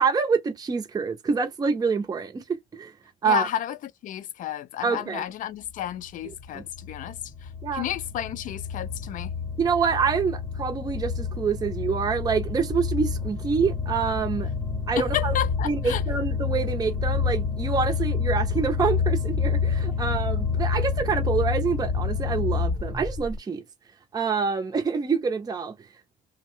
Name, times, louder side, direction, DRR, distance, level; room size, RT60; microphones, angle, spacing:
voice 1, 0.0-3.0 3.2-3.5 4.8-5.2 6.2-6.6 7.6-7.9 9.6-14.5 14.9-15.3 15.6-23.6 24.1-25.9, right 5 dB, 20° right, 0.6 m, -26 dB
voice 2, 3.2-3.8 4.0-7.2 7.4-9.3 15.0-16.0, left 11 dB, 50° left, 0.4 m, -31 dB
sound 1, 5.9-23.4, left 5 dB, 25° left, 0.9 m, -28 dB
2.6 x 2.1 x 3.1 m
cardioid pair, 110°, 17 cm